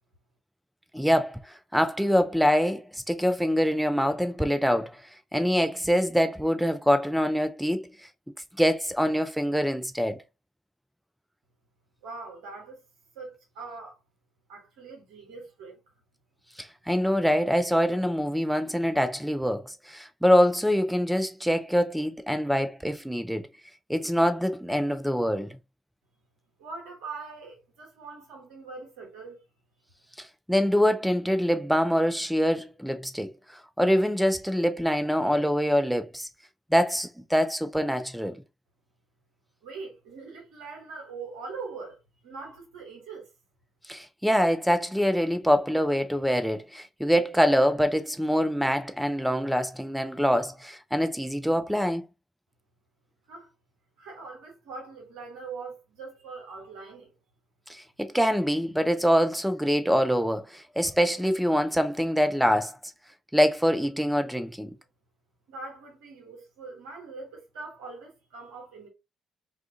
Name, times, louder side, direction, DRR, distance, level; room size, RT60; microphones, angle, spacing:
voice 1, 0.9-5.0 5.3-7.9 8.6-10.2 16.6-23.5 23.9-25.6 30.2-33.3 33.8-36.3 36.7-38.4 43.9-52.0 57.7-62.9 63.3-64.7, equal, ahead, 0.4 m, -25 dB
voice 2, 12.0-12.8 13.1-14.0 14.5-15.8 26.6-29.4 39.6-42.0 42.2-43.3 53.3-53.5 54.0-57.1 65.5-68.9, right 4 dB, 70° right, 0.9 m, -42 dB
2.4 x 2.4 x 2.6 m
figure-of-eight pair, 45°, 0 cm